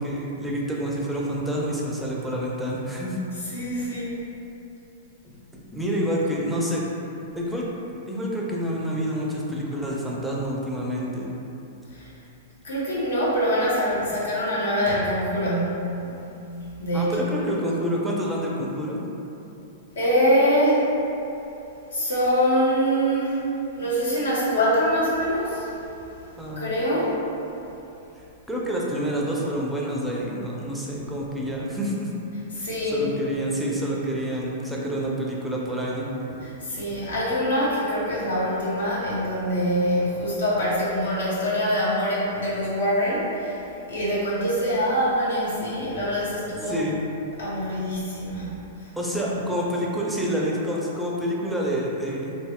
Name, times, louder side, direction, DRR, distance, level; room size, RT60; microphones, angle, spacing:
voice 1, 0.0-3.2 3.8-3.9 5.7-6.8 7.4-7.6 8.1-11.3 16.9-19.0 26.4-26.6 28.5-32.1 32.6-32.7 32.9-36.1 46.6-47.0 49.0-52.4, equal, 5° right, -4 dB, 0.5 m, -28 dB
voice 2, 3.5-4.2 11.9-12.1 12.6-16.0 16.8-17.1 19.9-20.9 21.9-23.4 23.7-25.7 26.6-27.2 32.5-33.1 36.4-46.8 47.4-48.9 49.4-49.5, equal, 65° left, -8 dB, 0.9 m, -24 dB
3.3 x 2.6 x 2.2 m, 2.9 s
figure-of-eight pair, 100°, 0 cm